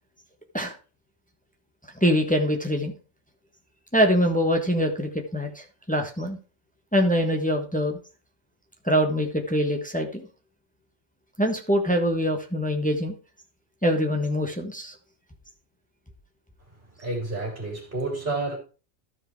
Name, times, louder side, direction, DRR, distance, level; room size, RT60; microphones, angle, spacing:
voice 1, 2.0-2.9 3.9-6.4 6.9-8.0 8.8-10.3 11.4-13.1 13.8-14.9, equal, 5° left, 1.3 m, -24 dB
voice 2, 17.0-18.6, right 2 dB, 40° right, 3.3 m, -30 dB
13.5 x 4.9 x 4.7 m
omnidirectional pair, 1.4 m